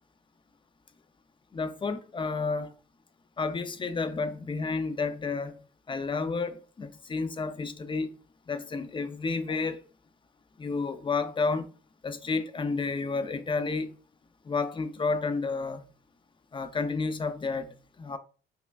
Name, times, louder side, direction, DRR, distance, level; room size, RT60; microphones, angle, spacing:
voice 1, 1.5-2.7 3.4-5.5 5.9-8.1 8.5-9.8 10.6-11.7 12.0-13.9 14.5-15.8 16.5-18.2, left 4 dB, 25° left, 0.5 m, -31 dB
5.5 x 2.3 x 2.3 m
cardioid pair, 90°, 20 cm